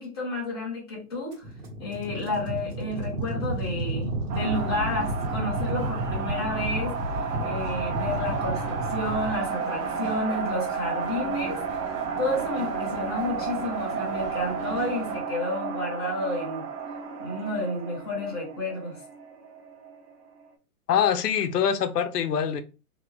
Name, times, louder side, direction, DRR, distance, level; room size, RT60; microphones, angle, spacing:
voice 1, 0.0-1.5 1.8-11.8 12.2-16.7 17.2-19.0, left 2 dB, 15° left, 0.7 m, -31 dB
sound 1, 1.3-9.4, right 1 dB, 45° right, 1.3 m, -31 dB
sound 2, 4.3-20.1, right 5 dB, 80° right, 1.0 m, -32 dB
voice 2, 20.9-22.6, left 8 dB, 90° left, 0.6 m, -24 dB
2.6 x 2.1 x 3.1 m
hypercardioid pair, 175°, 46 cm